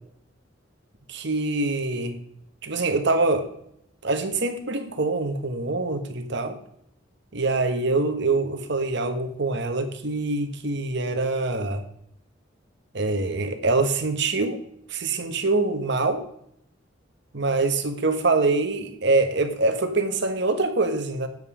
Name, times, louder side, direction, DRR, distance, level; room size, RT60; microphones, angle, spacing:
voice 1, 1.1-2.2 2.6-3.5 4.0-6.6 7.3-11.8 12.9-14.6 14.9-16.2 17.3-21.3, right 3 dB, 65° right, 7 dB, 1.4 m, -24 dB
9.4 x 8.0 x 5.1 m, 0.71 s
head